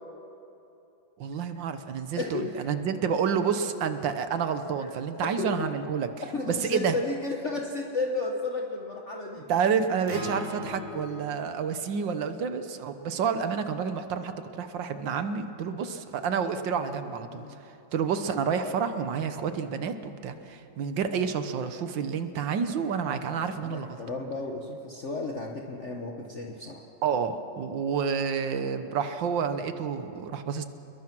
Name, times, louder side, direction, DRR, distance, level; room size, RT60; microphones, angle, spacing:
voice 1, 1.2-6.1 6.5-6.9 9.5-17.4 17.9-24.0 27.0-30.6, right 6 dB, 70° right, 9 dB, 1.7 m, -29 dB
voice 2, 2.2-2.7 4.8-4.9 5.4-5.7 6.3-9.4 17.3-17.6 20.3-20.5 23.5-26.8, left 3 dB, 40° left, 0 dB, 1.5 m, -33 dB
Acoustic guitar, 10.1-14.3, equal, 35° right, 3.4 m, -43 dB
28.5 x 21.5 x 6.1 m, 2.9 s
omnidirectional pair, 2.1 m